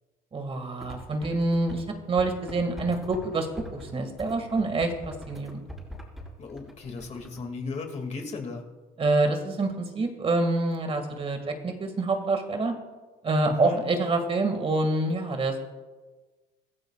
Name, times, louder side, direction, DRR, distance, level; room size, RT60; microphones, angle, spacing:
voice 1, 0.3-3.5 3.7-5.6 9.0-12.7 13.2-15.6, right 2 dB, 35° right, 5 dB, 2.0 m, -26 dB
sound 1, 0.8-1.8 2.2-7.4, right 1 dB, ahead, 5.1 m, -43 dB
voice 2, 6.4-8.6 13.5-13.8, left 4 dB, 40° left, 3 dB, 2.3 m, -36 dB
23.5 x 15.0 x 2.4 m, 1.3 s
cardioid pair, 110°, 17 cm